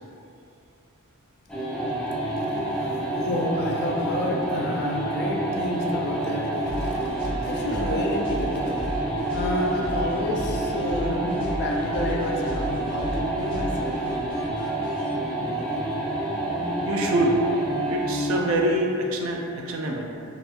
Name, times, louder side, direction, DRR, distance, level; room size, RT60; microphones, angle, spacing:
sound 1, 1.5-18.5, right 1 dB, 5° left, 0.7 m, -28 dB
voice 1, 2.3-14.0, left 1 dB, 50° left, -1 dB, 0.3 m, -30 dB
sound 2, 6.7-15.1, equal, 25° right, 1.2 m, -35 dB
voice 2, 16.9-17.4 17.9-20.1, right 1 dB, 65° right, 1 dB, 0.3 m, -25 dB
2.9 x 2.2 x 2.4 m, 2.5 s
head